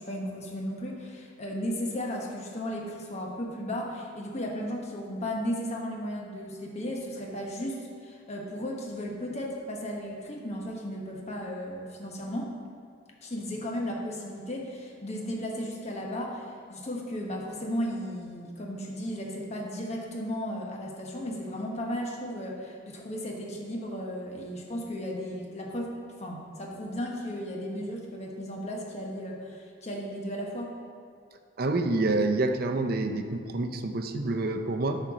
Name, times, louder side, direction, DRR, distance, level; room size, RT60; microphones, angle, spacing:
voice 1, 0.0-12.5 13.2-25.9 26.2-30.7, equal, 35° left, -1 dB, 1.1 m, -35 dB
voice 2, 31.6-35.0, right 2 dB, 50° right, 6 dB, 0.6 m, -27 dB
8.9 x 4.3 x 6.2 m, 2.2 s
head